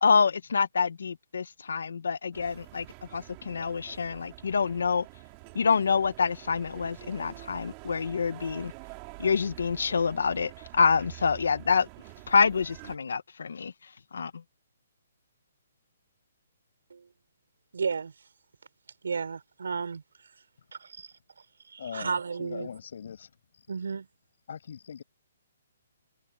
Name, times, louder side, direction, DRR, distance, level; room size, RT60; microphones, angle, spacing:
voice 1, 0.0-2.8 3.1-5.1 5.5-8.7 9.2-11.9 12.3-13.7 14.1-14.4, left 5 dB, 80° left, 1.3 m, -26 dB
sound 1, 2.3-13.0, right 26 dB, 20° right, 3.2 m, -47 dB
voice 2, 17.7-18.1 19.0-20.0 20.7-21.1 21.7-22.7 23.7-24.1, right 5 dB, 85° right, 5.6 m, -33 dB
voice 3, 21.8-22.1 22.4-23.7 24.5-25.0, left 7 dB, 55° left, 7.2 m, -41 dB
hypercardioid pair, 170°, 0 cm